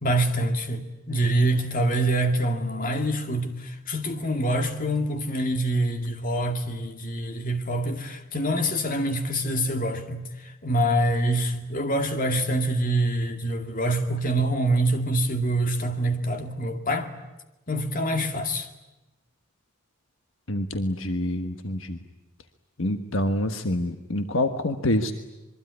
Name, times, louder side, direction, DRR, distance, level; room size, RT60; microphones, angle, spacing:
voice 1, 0.0-17.1 17.7-18.7, right 1 dB, 40° left, 2.4 m, -25 dB
voice 2, 20.5-22.0 22.8-25.1, left 1 dB, 70° left, 1.4 m, -26 dB
26.0 x 22.5 x 9.7 m
head